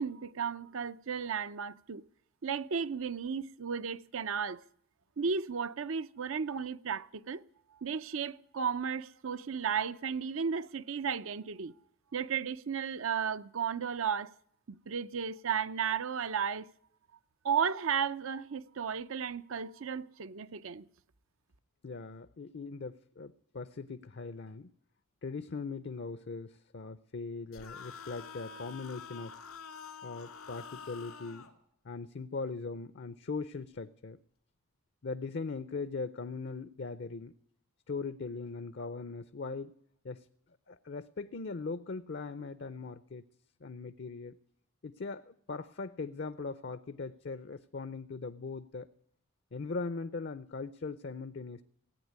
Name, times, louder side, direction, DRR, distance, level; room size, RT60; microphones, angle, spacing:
voice 1, 0.0-2.0 2.4-4.6 5.2-7.4 7.8-11.7 12.1-14.3 14.7-16.7 17.4-20.9, right 6 dB, 70° right, 0.6 m, -34 dB
voice 2, 21.8-24.7 25.2-29.4 30.0-31.5 31.8-34.2 35.0-37.4 37.9-39.7 40.0-40.3 40.7-43.2 43.6-44.4 44.8-48.9 49.5-51.6, left 4 dB, 50° left, 0.5 m, -40 dB
sound 1, 27.5-31.5, left 6 dB, 90° left, 2.3 m, -47 dB
17.0 x 8.9 x 9.3 m
head